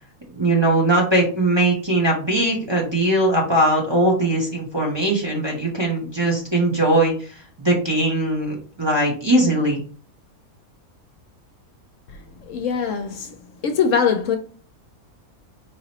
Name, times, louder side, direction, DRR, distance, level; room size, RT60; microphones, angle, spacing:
voice 1, 0.3-9.8, right 1 dB, 20° right, 0.8 m, -20 dB
voice 2, 12.1-13.4 13.6-14.4, left 6 dB, 70° left, 0.9 m, -22 dB
4.7 x 2.9 x 2.9 m
omnidirectional pair, 1.5 m